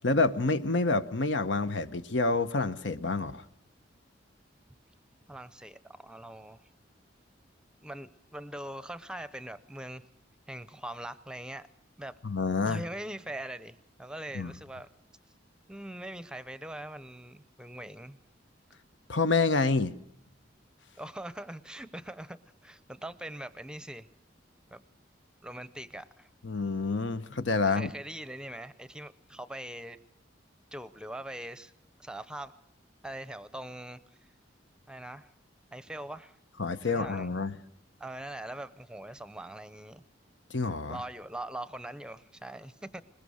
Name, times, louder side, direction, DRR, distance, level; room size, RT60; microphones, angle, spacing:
voice 1, 0.0-3.4 12.2-12.8 14.3-14.5 19.1-19.9 26.4-27.9 36.6-37.6 40.5-41.0, left 3 dB, 75° left, 1.0 m, -28 dB
voice 2, 5.3-6.7 7.8-10.0 10.5-11.7 12.0-12.2 12.7-14.9 15.7-18.2 21.0-24.1 24.7-24.8 25.4-26.3 27.6-30.0 30.7-31.7 32.0-32.6 33.0-34.0 34.9-35.3 35.7-36.4 36.9-37.3 38.0-40.0 40.9-43.0, right 1 dB, 5° right, 0.7 m, -42 dB
21.0 x 21.0 x 6.4 m
head